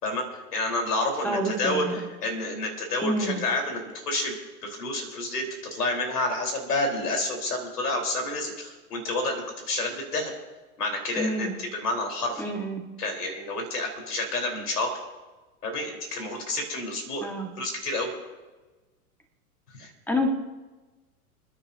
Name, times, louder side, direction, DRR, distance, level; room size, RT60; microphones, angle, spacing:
voice 1, 0.0-1.8 2.2-4.3 4.6-9.4 9.7-10.3 10.8-12.5 13.0-14.9 15.6-17.3 17.6-18.1 19.8-19.9, left 2 dB, 90° left, 2 dB, 4.2 m, -29 dB
voice 2, 1.2-2.0 3.0-3.4 11.2-11.5 12.4-12.8 17.2-17.5 20.1-20.3, equal, 5° left, 4 dB, 1.6 m, -28 dB
29.5 x 10.0 x 2.8 m, 1.2 s
hypercardioid pair, 110°, 45 cm